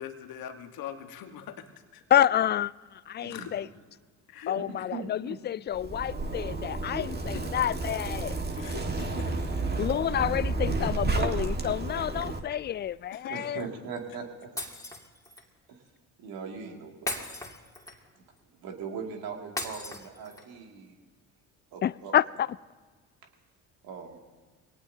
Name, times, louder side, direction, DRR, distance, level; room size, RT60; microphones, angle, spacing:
voice 1, 0.0-2.0 3.3-3.5 4.3-4.6 6.9-7.4 8.6-9.4 12.1-12.2 13.1-13.3, left 9 dB, 65° left, 1.5 m, -42 dB
voice 2, 2.1-3.7 4.5-8.4 9.8-13.6 21.8-22.5, left 10 dB, 30° left, 0.3 m, -28 dB
voice 3, 4.9-5.4 9.1-9.2 13.3-14.5 15.7-15.8 16.2-17.3 18.6-21.0 21.7-22.1 23.8-24.2, right 5 dB, 70° right, 2.5 m, -40 dB
Zipper (clothing), 5.7-12.4, right 3 dB, 25° right, 1.8 m, -31 dB
Shatter, 14.6-15.5 17.1-18.2 19.6-20.6, left 1 dB, 10° left, 2.6 m, -37 dB
23.0 x 18.0 x 2.8 m
hypercardioid pair, 55°, 38 cm